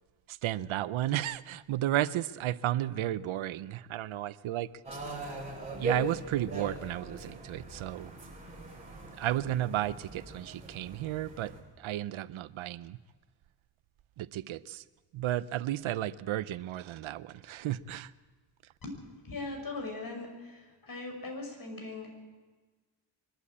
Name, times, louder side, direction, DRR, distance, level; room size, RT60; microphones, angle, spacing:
voice 1, 0.3-4.7 5.8-8.1 9.2-13.0 14.2-14.8 15.1-18.1, right 13 dB, 85° right, 16 dB, 0.7 m, -33 dB
sound 1, 4.8-11.6, right 2 dB, 15° right, 7.9 m, -40 dB
voice 2, 19.2-22.3, left 3 dB, 45° left, 3 dB, 6.0 m, -40 dB
23.5 x 13.0 x 8.7 m, 1.3 s
cardioid pair, 85°, 46 cm